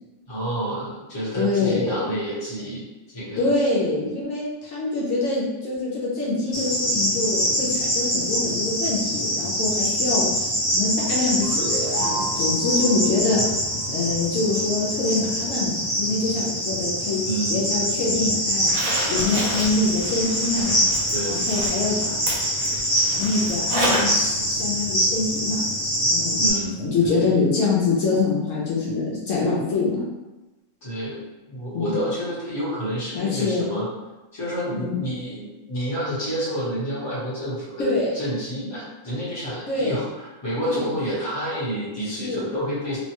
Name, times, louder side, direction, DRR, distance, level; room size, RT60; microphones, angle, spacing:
voice 1, 0.2-3.5 17.2-17.6 21.1-21.4 26.3-27.3 30.8-33.9 34.3-43.0, equal, 20° left, -9 dB, 0.9 m, -29 dB
voice 2, 1.3-2.0 3.4-13.4 13.9-17.2 17.5-18.7 19.1-20.8 21.3-22.2 23.1-25.7 26.1-26.4 26.8-30.0 31.7-32.0 33.1-33.7 34.8-35.0 37.8-38.1 39.7-40.0 40.6-40.9 42.0-42.5, left 3 dB, 75° left, -5 dB, 1.0 m, -25 dB
Cricket, 6.5-26.5, equal, 45° left, 1.0 m, -24 dB
sound 1, 11.4-14.6, right 2 dB, 35° right, 0.8 m, -33 dB
Zipper (clothing), 18.5-24.2 24.5-24.6 26.5-26.6 27.0-27.1, right 1 dB, 85° right, 1.3 m, -30 dB
3.0 x 2.2 x 2.9 m, 1.1 s
omnidirectional pair, 1.4 m